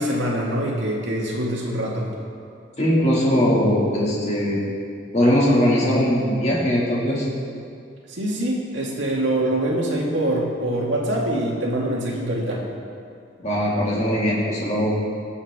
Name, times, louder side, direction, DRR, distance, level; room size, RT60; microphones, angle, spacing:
voice 1, 0.0-2.1 8.1-12.6, right 1 dB, 70° right, -2 dB, 2.0 m, -24 dB
voice 2, 2.8-4.6 5.1-7.3 13.4-14.9, equal, 35° left, -5 dB, 2.3 m, -20 dB
19.5 x 7.1 x 3.7 m, 2.4 s
head